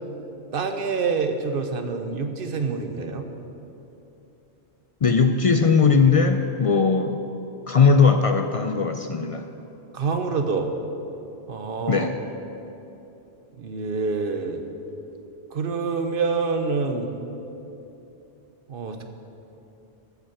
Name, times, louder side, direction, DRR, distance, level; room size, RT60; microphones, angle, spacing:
voice 1, 0.5-3.3 9.9-10.7 11.5-12.1 13.6-14.6 15.5-17.1 18.7-19.1, right 4 dB, 55° right, 6 dB, 1.0 m, -26 dB
voice 2, 5.0-7.2 7.7-9.5 11.9-12.2, left 5 dB, 65° left, 7 dB, 0.3 m, -19 dB
14.0 x 5.9 x 7.0 m, 2.9 s
omnidirectional pair, 1.1 m